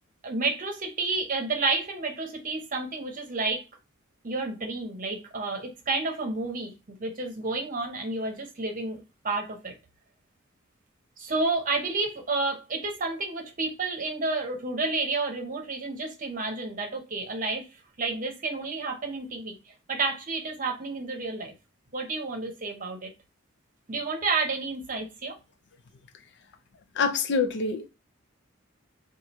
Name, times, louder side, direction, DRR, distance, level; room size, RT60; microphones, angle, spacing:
voice 1, 0.2-3.6 4.2-9.7 11.2-17.7 18.0-19.5 19.9-21.5 21.9-23.1 23.9-25.3, right 3 dB, 40° right, 0.8 m, -30 dB
voice 2, 27.0-27.9, left 5 dB, 55° left, 0.5 m, -26 dB
4.3 x 2.4 x 2.9 m
head